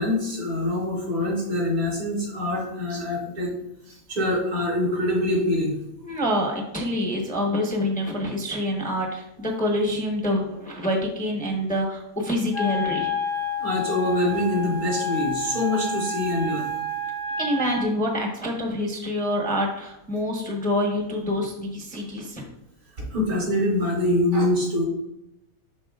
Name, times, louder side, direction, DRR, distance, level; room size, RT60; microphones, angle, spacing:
voice 1, 0.0-3.5 3.9-5.7 13.6-16.7 23.0-24.8, left 1 dB, 90° right, -4 dB, 3.3 m, -24 dB
voice 2, 6.0-13.1 17.4-22.4, left 1 dB, 5° left, 0 dB, 0.8 m, -26 dB
Wind instrument woodwind instrument, 12.5-17.9, left 2 dB, 55° left, 1.0 m, -29 dB
11.0 x 3.8 x 2.4 m, 0.86 s
omnidirectional pair, 1.6 m